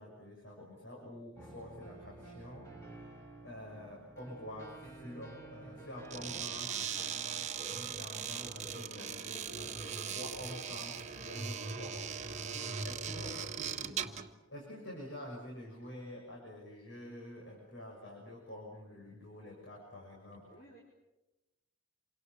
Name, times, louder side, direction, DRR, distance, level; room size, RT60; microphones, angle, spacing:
voice 1, 0.0-9.8 10.1-12.0 12.8-14.1 14.5-20.6, left 1 dB, 60° left, -2 dB, 6.4 m, -48 dB
sound 1, 1.4-6.4, right 2 dB, 15° left, 4.4 m, -51 dB
sound 2, 6.1-14.3, right 7 dB, 35° right, 1.5 m, -39 dB
voice 2, 12.5-12.8 13.2-13.3 20.5-20.8, right 1 dB, 45° left, -2 dB, 4.8 m, -58 dB
28.0 x 25.5 x 6.9 m, 1.0 s
head